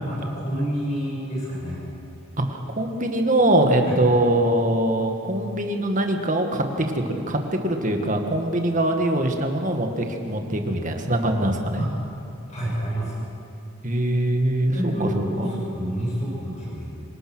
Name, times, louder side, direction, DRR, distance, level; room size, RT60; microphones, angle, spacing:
voice 1, 0.1-1.8 3.8-4.0 11.8-11.9 12.5-13.2 14.7-17.0, equal, 30° left, -5 dB, 6.9 m, -28 dB
voice 2, 2.4-11.8 13.8-15.1 15.4-15.5, right 1 dB, 35° right, 4 dB, 1.8 m, -23 dB
27.0 x 18.5 x 6.3 m, 2.5 s
head